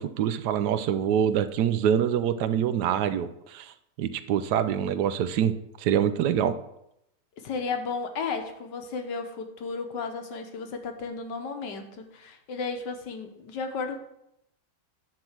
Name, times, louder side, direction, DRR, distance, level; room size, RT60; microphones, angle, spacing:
voice 1, 0.0-3.7 4.0-5.5 5.8-6.6, right 9 dB, 75° right, 12 dB, 1.1 m, -25 dB
voice 2, 7.4-14.0, left 4 dB, 85° left, 6 dB, 1.7 m, -34 dB
10.0 x 3.9 x 7.2 m, 0.80 s
omnidirectional pair, 1.9 m